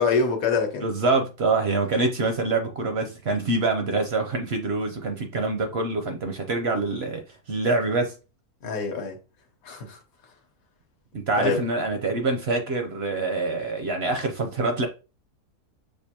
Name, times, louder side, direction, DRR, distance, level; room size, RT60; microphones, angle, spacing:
voice 1, 0.0-0.9 8.6-9.2 9.6-10.0 11.4-11.6, left 5 dB, 65° left, 1.3 m, -25 dB
voice 2, 0.8-7.2 7.5-8.1 11.1-14.9, right 3 dB, 60° right, 0.7 m, -25 dB
6.7 x 2.5 x 2.8 m
omnidirectional pair, 1.7 m